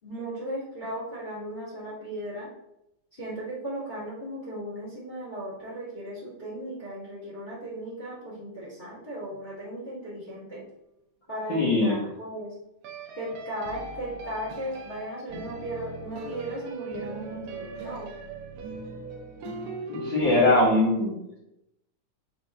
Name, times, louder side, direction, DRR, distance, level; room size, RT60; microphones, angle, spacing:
voice 1, 0.0-2.5 3.1-10.6 11.3-12.5 13.1-18.1, right 1 dB, 20° left, -7 dB, 1.8 m, -36 dB
sound 1, 10.5-10.7 12.8-20.6, right 3 dB, 80° right, 1.2 m, -39 dB
voice 2, 11.5-12.0 19.9-21.2, left 2 dB, 45° left, -8 dB, 1.8 m, -21 dB
8.1 x 4.3 x 3.5 m, 0.85 s
omnidirectional pair, 3.5 m